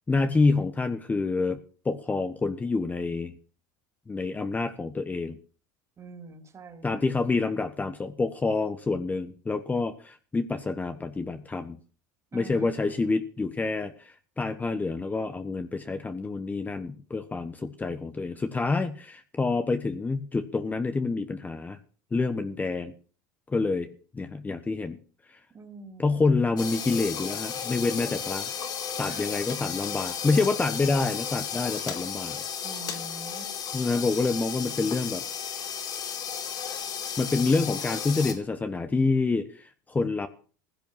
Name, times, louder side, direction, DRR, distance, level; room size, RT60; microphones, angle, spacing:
voice 1, 0.1-3.3 4.1-5.4 6.8-11.8 12.3-21.8 22.1-22.9 23.5-25.0 25.3-25.4 26.0-28.5 29.0-32.4 33.7-35.2 37.2-40.3, left 3 dB, 15° left, 9 dB, 1.2 m, -27 dB
voice 2, 6.0-7.1 12.3-13.0 25.5-26.3 29.0-29.4 32.6-33.5, right 3 dB, 30° right, 8 dB, 3.3 m, -45 dB
sound 1, 26.6-38.3, left 8 dB, 45° left, 4.3 m, -34 dB
16.0 x 9.2 x 7.4 m, 0.40 s
hypercardioid pair, 100°, 10 cm